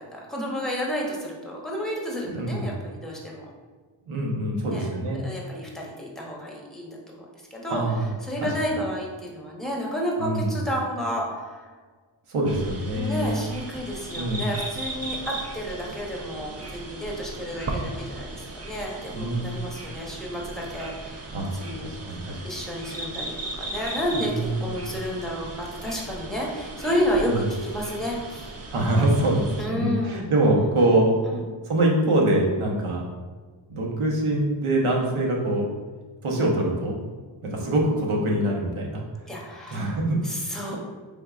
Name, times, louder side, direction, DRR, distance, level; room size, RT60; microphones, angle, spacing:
voice 1, 0.0-3.4 4.7-7.2 7.5-7.8 8.3-11.6 12.9-21.3 21.6-21.9 22.4-28.5 29.6-30.3 31.3-31.4 35.0-35.1 39.3-39.9 40.2-40.8, equal, ahead, -2 dB, 0.8 m, -31 dB
voice 2, 2.3-2.7 4.1-5.3 7.7-8.6 10.2-10.6 12.3-13.4 14.1-14.5 19.1-19.5 21.3-21.5 21.8-22.4 24.1-24.7 27.3-27.4 28.7-31.2 31.6-33.0 33.7-35.6 36.2-37.0 37.4-39.0 39.7-40.2, right 1 dB, 85° right, -1 dB, 1.0 m, -24 dB
sound 1, 12.4-29.7, right 2 dB, 30° right, 0.5 m, -37 dB
4.5 x 3.4 x 2.4 m, 1.4 s
wide cardioid pair, 100°, 49 cm